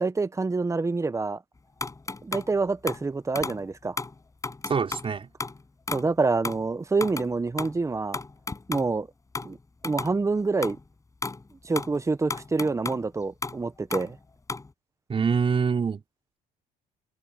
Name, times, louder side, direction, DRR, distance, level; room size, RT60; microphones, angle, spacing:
voice 1, 0.0-1.4 2.2-4.0 5.9-8.2 8.7-9.1 9.4-9.6 9.8-10.8 11.6-14.2, right 3 dB, 15° right, 1.3 m, -27 dB
sound 1, 1.8-2.5 2.9-3.1 3.4-3.7 4.0-5.1 5.4-6.1 6.4-6.7 7.0-7.3 7.6-8.9 9.4-9.6 9.8-10.2 10.6-10.8 11.2-11.4 11.7-13.1 13.4-14.7, left 3 dB, 20° left, 7.5 m, -34 dB
voice 2, 4.7-5.3 15.1-16.0, right 6 dB, 35° right, 4.2 m, -25 dB
cardioid pair, 110°, 17 cm